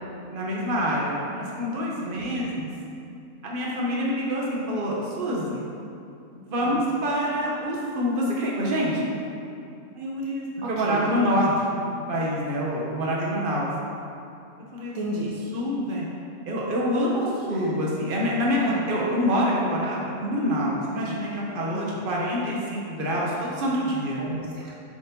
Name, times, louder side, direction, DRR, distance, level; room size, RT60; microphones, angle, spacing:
voice 1, 0.3-2.7 3.4-5.7 6.3-9.2 9.9-11.8 12.1-13.7 14.7-15.0 15.5-16.1 16.4-24.2, equal, 40° right, -4 dB, 1.3 m, -26 dB
voice 2, 2.1-2.4 6.6-6.8 10.6-11.2 14.9-15.3 17.5-17.7 18.6-18.8 22.1-22.2 24.2-24.8, right 1 dB, 70° right, -4 dB, 1.2 m, -33 dB
7.4 x 5.4 x 3.8 m, 2.6 s
omnidirectional pair, 1.6 m